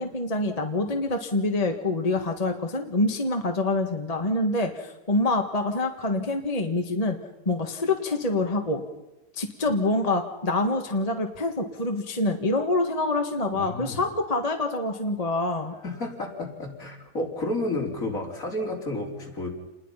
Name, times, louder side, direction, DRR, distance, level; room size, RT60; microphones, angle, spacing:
voice 1, 0.0-7.2 7.4-8.8 9.3-15.7, left 2 dB, 25° left, 4 dB, 1.7 m, -26 dB
voice 2, 13.5-14.0 15.8-19.5, left 2 dB, 60° left, 0 dB, 4.5 m, -31 dB
29.0 x 21.0 x 5.8 m, 0.99 s
omnidirectional pair, 1.6 m